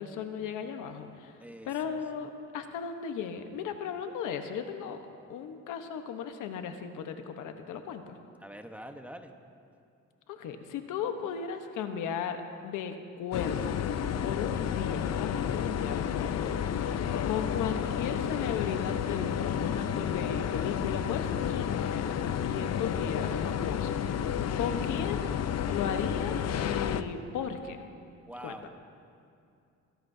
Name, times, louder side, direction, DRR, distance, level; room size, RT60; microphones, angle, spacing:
voice 1, 0.0-1.3 1.6-5.0 5.3-8.2 10.3-12.4 12.6-13.8 14.2-16.6 17.0-24.0 24.6-25.3 25.7-26.3 26.6-27.8 28.4-28.5, left 7 dB, 90° left, 6 dB, 1.1 m, -36 dB
voice 2, 1.4-2.3 8.4-9.3 22.4-24.1 28.2-28.7, equal, 5° right, 5 dB, 1.1 m, -47 dB
sound 1, 13.3-27.0, left 8 dB, 60° left, 0.7 m, -31 dB
23.5 x 17.5 x 2.7 m, 2.5 s
cardioid pair, 90°, 30 cm